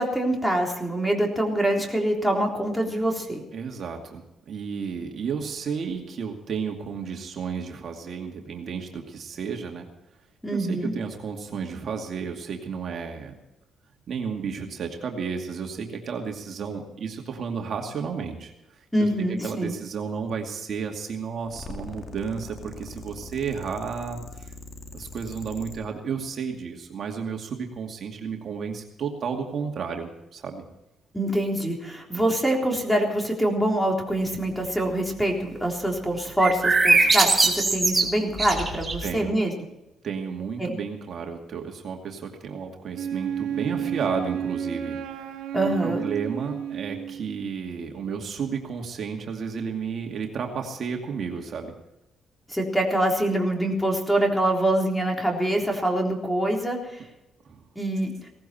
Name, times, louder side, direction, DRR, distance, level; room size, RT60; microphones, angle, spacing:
voice 1, 0.0-3.4 10.4-10.9 18.9-19.7 31.1-39.5 40.6-40.8 45.5-46.0 52.5-57.0 57.8-58.1, right 1 dB, 5° left, 1 dB, 3.7 m, -25 dB
voice 2, 3.5-9.9 10.5-13.3 14.1-18.5 19.4-24.5 24.9-30.6 39.0-39.3 40.0-45.4 45.8-51.7 57.5-57.6, right 6 dB, 55° right, 2 dB, 2.4 m, -32 dB
sound 1, 21.4-25.8, left 3 dB, 45° left, 2.7 m, -41 dB
sound 2, 36.4-39.1, right 3 dB, 20° right, 3.3 m, -21 dB
Wind instrument woodwind instrument, 42.9-47.3, right 8 dB, 85° right, 1.9 m, -31 dB
18.0 x 15.0 x 4.4 m, 0.92 s
cardioid pair, 90°, 0 cm